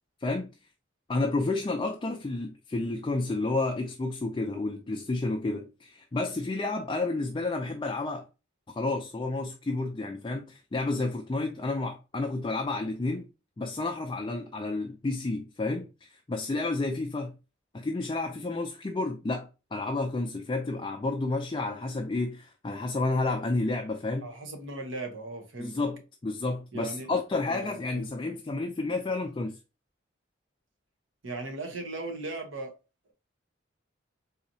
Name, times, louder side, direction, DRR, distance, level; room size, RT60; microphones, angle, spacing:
voice 1, 0.2-0.5 1.1-8.3 8.7-13.3 13.6-17.4 17.7-24.3 25.6-29.6, left 2 dB, 25° left, 0.3 m, -31 dB
voice 2, 24.2-25.8 26.7-27.1 27.5-28.1 31.2-32.7, right 2 dB, 85° right, 0.9 m, -38 dB
4.0 x 2.8 x 2.6 m
head